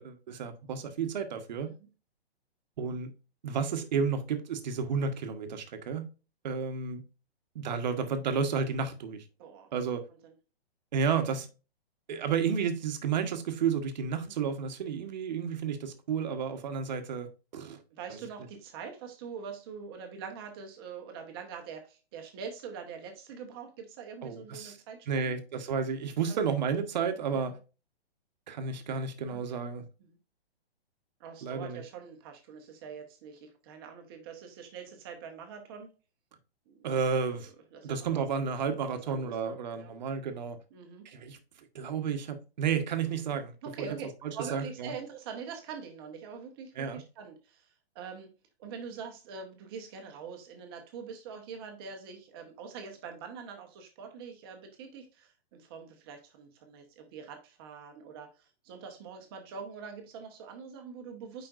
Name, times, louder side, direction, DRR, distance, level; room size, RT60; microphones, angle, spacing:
voice 1, 0.0-1.7 2.8-3.1 3.4-6.1 6.4-7.0 7.5-9.2 9.7-10.0 10.9-11.5 12.1-17.8 24.2-24.8 25.1-27.6 28.5-29.8 31.4-31.8 36.8-37.5 37.8-40.6 41.0-41.4 41.7-43.9 44.2-44.9 46.8-47.0, right 6 dB, 45° right, 1.1 m, -32 dB
voice 2, 9.4-9.7 10.2-10.3 14.2-14.3 17.9-25.3 26.3-26.5 27.3-27.6 29.3-29.6 30.1-30.2 31.2-35.9 36.7-37.0 37.7-38.3 38.6-39.9 40.7-41.1 43.6-44.1 44.3-48.3 48.6-61.5, right 6 dB, 25° right, 1.0 m, -44 dB
7.6 x 5.1 x 2.5 m
hypercardioid pair, 165°, 31 cm